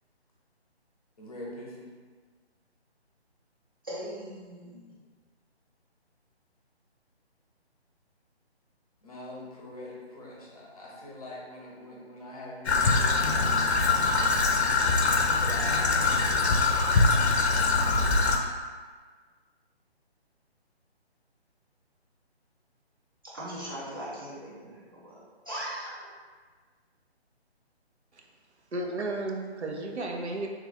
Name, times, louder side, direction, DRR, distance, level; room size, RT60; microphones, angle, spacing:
voice 1, 1.2-1.9 9.0-14.6 15.1-16.8, left 1 dB, 35° left, -4 dB, 0.6 m, -44 dB
voice 2, 3.8-5.0 23.2-25.2 25.5-26.1, right 1 dB, 20° right, -8 dB, 0.5 m, -39 dB
Traffic noise roadway noise / Trickle dribble, 12.7-18.4, left 3 dB, 75° left, 0.5 m, -23 dB
voice 3, 28.7-30.5, right 2 dB, 85° right, 1 dB, 0.6 m, -33 dB
3.1 x 2.3 x 3.2 m, 1.5 s
figure-of-eight pair, 145°, 33 cm